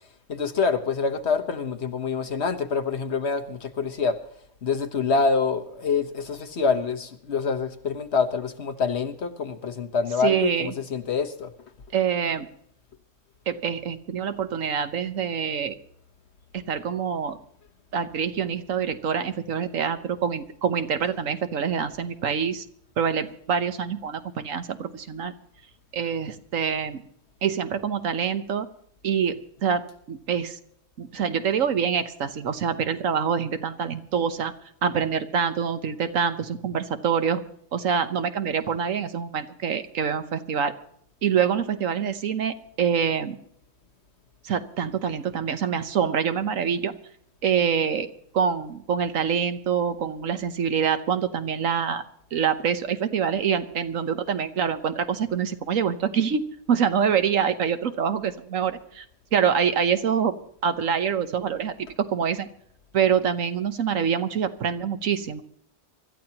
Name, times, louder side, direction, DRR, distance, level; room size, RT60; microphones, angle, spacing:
voice 1, 0.3-4.2 4.6-11.5, left 5 dB, 55° left, 8 dB, 1.4 m, -26 dB
voice 2, 10.2-10.7 11.9-12.5 13.5-15.7 16.5-17.4 17.9-22.6 23.0-25.3 25.9-27.0 27.4-28.7 29.0-30.6 31.0-34.5 34.8-37.4 37.7-40.7 41.2-43.4 44.4-47.0 47.4-52.0 52.3-59.0 59.3-60.3 60.6-62.5 62.9-65.4, right 7 dB, 85° right, 10 dB, 1.4 m, -25 dB
24.5 x 13.5 x 2.9 m, 0.66 s
omnidirectional pair, 1.3 m